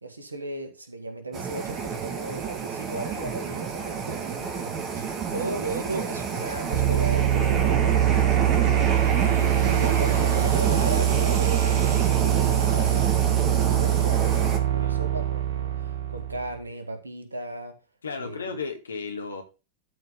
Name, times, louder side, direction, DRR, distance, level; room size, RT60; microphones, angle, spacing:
voice 1, 0.0-8.2 9.5-17.8 18.2-18.6, right 2 dB, 80° right, 1.7 m, -36 dB
sound 1, 1.3-14.6, right 6 dB, 30° right, 2.0 m, -29 dB
sound 2, 6.7-16.5, right 11 dB, 60° right, 1.6 m, -23 dB
voice 2, 18.0-19.4, left 4 dB, 70° left, 1.9 m, -34 dB
12.5 x 4.6 x 3.8 m
figure-of-eight pair, 90°, 0 cm